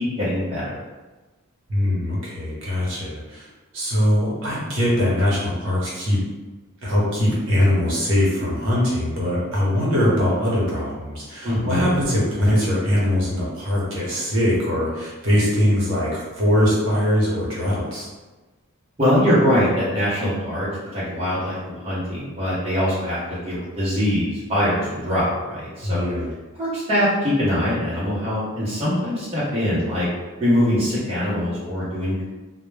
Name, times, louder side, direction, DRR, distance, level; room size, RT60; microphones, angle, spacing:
voice 1, 0.2-0.8 11.4-11.9 19.0-26.0 26.6-30.1 30.4-32.2, equal, 25° right, -10 dB, 0.7 m, -22 dB
voice 2, 1.7-3.5 3.7-6.2 6.8-18.1 25.8-26.3, equal, 55° right, -6 dB, 0.8 m, -21 dB
2.1 x 2.1 x 3.2 m, 1.2 s
head